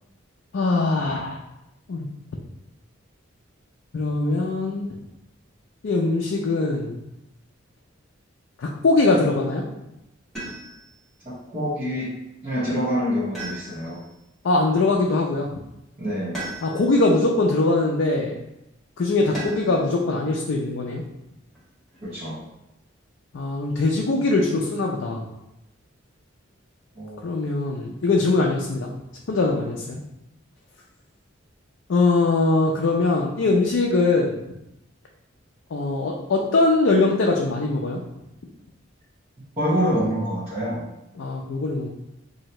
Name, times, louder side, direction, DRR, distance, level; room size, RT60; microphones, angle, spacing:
voice 1, 0.5-1.4 1.9-2.1 3.9-4.9 5.8-7.0 8.6-9.6 14.4-15.5 16.6-18.4 19.0-21.0 23.3-25.2 27.2-28.9 29.3-30.0 31.9-34.3 35.7-38.0 41.2-41.9, left 3 dB, 65° left, -1 dB, 0.4 m, -22 dB
sound 1, 10.4-11.0 13.3-14.1 16.3-17.1 19.3-19.9 21.6-22.2, right 1 dB, ahead, 1.3 m, -36 dB
voice 2, 11.5-12.1 12.4-14.0 16.0-16.4 22.0-22.4 26.9-27.2 39.6-40.8, equal, 30° right, -11 dB, 1.0 m, -26 dB
2.9 x 2.7 x 4.2 m, 0.88 s
head